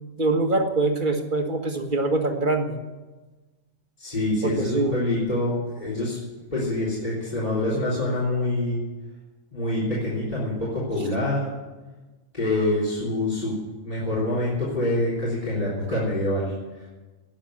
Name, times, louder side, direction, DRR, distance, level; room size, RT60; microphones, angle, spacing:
voice 1, 0.1-2.8 4.4-4.9, right 2 dB, 40° right, 4 dB, 1.8 m, -24 dB
voice 2, 4.0-6.2 6.5-8.8 9.5-11.5 12.3-13.5 13.8-16.9, left 1 dB, 30° left, -6 dB, 3.8 m, -26 dB
19.5 x 7.2 x 9.9 m, 1.2 s
omnidirectional pair, 1.4 m